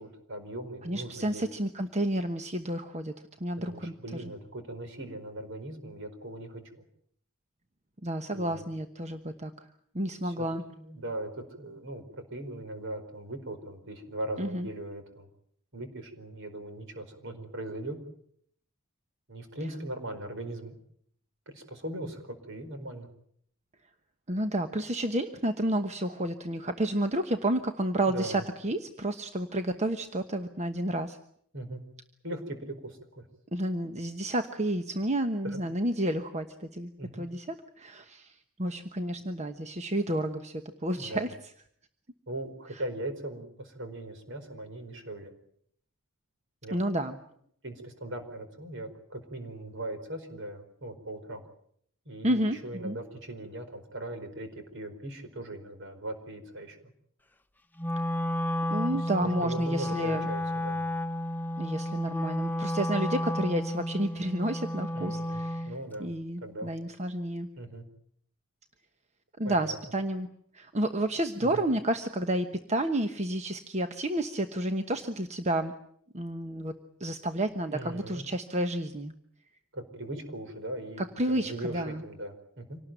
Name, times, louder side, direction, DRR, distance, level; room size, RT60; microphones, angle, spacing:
voice 1, 0.0-1.4 3.6-6.8 8.3-8.7 10.2-11.3 11.6-15.3 15.7-18.0 19.3-20.7 21.5-23.1 28.1-28.4 31.5-31.8 32.2-33.2 35.4-35.6 37.0-37.2 41.0-41.3 42.3-45.3 46.6-46.8 47.6-51.4 52.0-56.9 59.0-60.8 64.9-66.1 66.4-66.7 67.6-67.8 69.4-69.8 71.4-71.6 77.7-78.2 79.7-82.8, right 1 dB, 55° right, 7 dB, 4.8 m, -39 dB
voice 2, 0.8-4.3 8.0-9.7 9.9-10.6 14.4-14.7 24.3-31.2 33.5-41.3 46.7-47.2 52.2-53.0 58.7-60.3 61.6-65.7 66.0-67.5 69.4-70.3 70.5-75.7 76.1-76.7 77.0-79.1 81.0-82.0, right 1 dB, 30° right, 7 dB, 1.1 m, -31 dB
Wind instrument woodwind instrument, 57.8-65.8, equal, 10° left, 0.9 m, -32 dB
26.0 x 18.5 x 9.1 m, 0.68 s
head